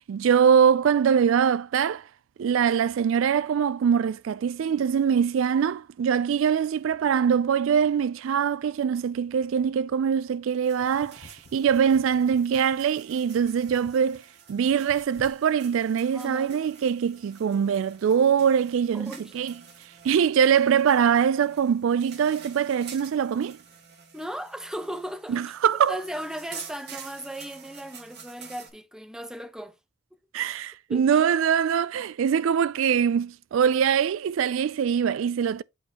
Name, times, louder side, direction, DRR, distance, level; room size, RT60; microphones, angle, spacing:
voice 1, 0.1-2.0 2.4-14.2 14.5-19.5 20.0-23.6 25.3-26.0 30.3-35.6, right 7 dB, 70° right, 0.3 m, -23 dB
sound 1, 10.6-28.7, right 7 dB, 50° right, 1.4 m, -49 dB
sound 2, 10.7-14.2 14.5-15.4, left 2 dB, 65° left, 1.0 m, -52 dB
voice 2, 16.1-16.6 18.9-19.4 24.1-25.4 25.9-29.8 30.9-31.2, equal, 5° right, 0.5 m, -36 dB
8.3 x 3.1 x 4.2 m
head